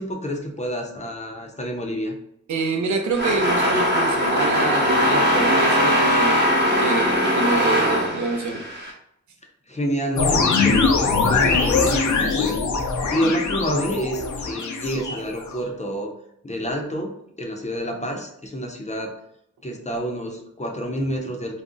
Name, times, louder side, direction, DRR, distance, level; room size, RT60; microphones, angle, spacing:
voice 1, 0.0-2.1 9.7-12.6 13.1-16.1 16.4-19.2 19.6-21.6, equal, 25° left, 2 dB, 0.5 m, -28 dB
voice 2, 2.5-6.4 6.8-8.6, right 3 dB, 75° right, 3 dB, 0.5 m, -26 dB
sound 1, 3.1-8.9, equal, 35° right, 1.0 m, -20 dB
sound 2, 10.2-15.6, left 4 dB, 80° left, 0.5 m, -22 dB
2.5 x 2.0 x 3.6 m, 0.73 s
wide cardioid pair, 85°, 29 cm